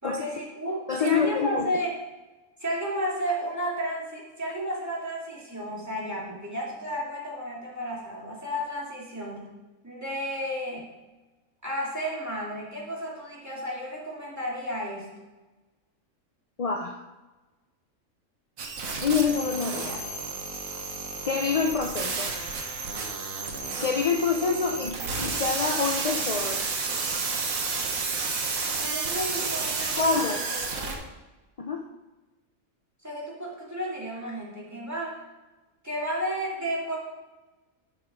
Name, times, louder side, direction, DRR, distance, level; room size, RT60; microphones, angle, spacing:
voice 1, 0.0-1.9 2.6-9.5 9.8-10.9 11.6-15.1 28.8-31.0 33.0-35.2 35.8-37.0, equal, 10° right, -5 dB, 2.6 m, -32 dB
voice 2, 0.9-1.7 16.6-17.0 19.0-20.0 21.3-22.3 23.8-26.7 30.0-30.4 31.6-31.9, left 5 dB, 50° left, 3 dB, 0.4 m, -26 dB
sound 1, 18.6-31.0, right 4 dB, 85° right, 1.6 m, -31 dB
11.0 x 6.0 x 5.0 m, 1.1 s
omnidirectional pair, 1.4 m